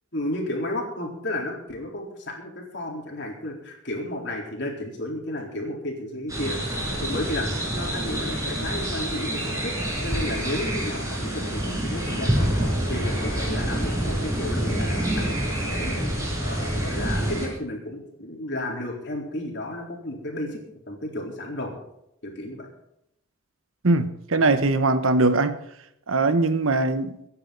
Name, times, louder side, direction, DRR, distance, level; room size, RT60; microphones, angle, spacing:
voice 1, 0.1-6.6 7.0-9.8 10.0-12.5 12.9-20.6 20.9-21.7 22.2-22.7, left 1 dB, 55° left, 0 dB, 4.0 m, -33 dB
sound 1, 6.3-17.5, right 1 dB, 15° right, 5.6 m, -27 dB
voice 2, 23.8-25.6 26.1-27.2, right 2 dB, 80° right, 10 dB, 1.1 m, -21 dB
24.5 x 10.0 x 4.0 m, 0.79 s
head